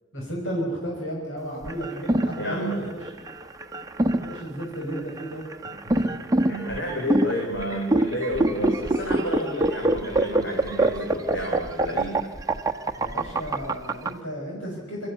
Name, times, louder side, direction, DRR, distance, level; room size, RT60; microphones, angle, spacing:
voice 1, 0.1-3.1 4.2-5.4 13.0-15.1, equal, 85° left, -2 dB, 5.4 m, -33 dB
sound 1, 1.6-14.1, right 2 dB, 20° right, 1.0 m, -24 dB
voice 2, 2.4-2.9 5.8-12.2, equal, 65° left, 0 dB, 3.6 m, -31 dB
25.0 x 14.0 x 8.2 m, 1.5 s
head